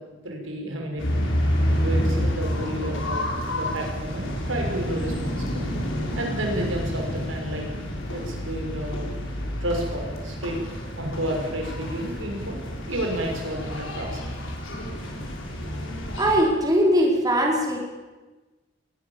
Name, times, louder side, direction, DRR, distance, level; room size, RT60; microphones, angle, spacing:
voice 1, 0.2-1.0 1.8-3.2 3.5-5.7 6.2-7.7 8.1-9.1 9.6-10.6 11.0-12.6 12.9-14.3, right 1 dB, 85° right, 1 dB, 6.2 m, -31 dB
sound 1, 1.0-16.4, equal, 85° left, 5.9 m, -29 dB
voice 2, 16.2-17.8, equal, 20° right, -1 dB, 4.8 m, -20 dB
22.0 x 19.5 x 7.3 m, 1.2 s
head